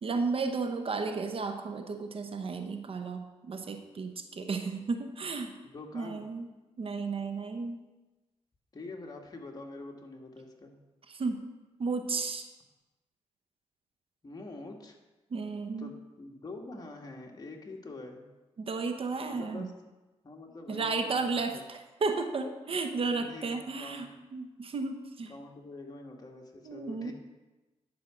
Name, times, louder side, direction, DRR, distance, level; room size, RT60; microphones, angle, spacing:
voice 1, 0.0-5.6 5.9-6.5 6.8-7.8 11.1-11.5 11.8-12.5 15.3-15.9 18.6-19.7 20.7-25.3 26.6-27.1, right 4 dB, 55° right, 6 dB, 0.9 m, -33 dB
voice 2, 5.7-6.2 8.7-10.7 14.2-15.0 15.8-18.3 19.3-19.7 20.2-21.6 23.1-24.0 25.3-27.1, left 2 dB, 35° left, 1 dB, 1.5 m, -45 dB
10.5 x 4.7 x 6.2 m, 1.1 s
cardioid pair, 75°, 11 cm